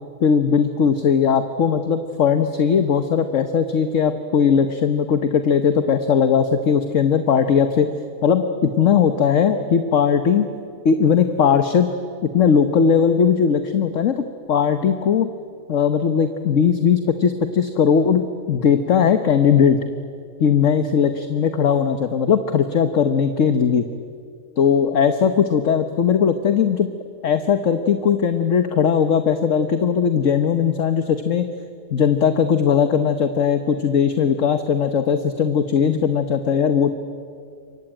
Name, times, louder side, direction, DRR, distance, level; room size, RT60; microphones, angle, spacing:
voice 1, 0.2-7.9 8.2-10.5 10.8-11.9 12.3-15.3 15.7-18.2 18.5-19.8 20.4-23.8 24.6-26.9 27.2-31.5 31.9-36.9, left 7 dB, 55° left, 9 dB, 1.3 m, -18 dB
28.0 x 23.5 x 8.9 m, 2.3 s
omnidirectional pair, 1.7 m